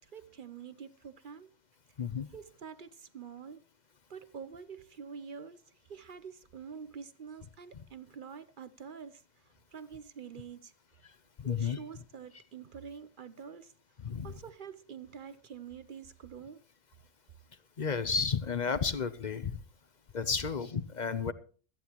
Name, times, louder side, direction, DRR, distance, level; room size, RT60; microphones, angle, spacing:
voice 1, 0.0-1.5 2.3-3.7 4.1-10.7 11.4-13.7 14.2-16.7, right 6 dB, 50° right, 0.6 m, -47 dB
voice 2, 11.4-11.8 14.0-14.3 17.8-19.6 20.1-21.3, left 5 dB, 50° left, 0.5 m, -32 dB
18.0 x 13.5 x 3.0 m
omnidirectional pair, 1.7 m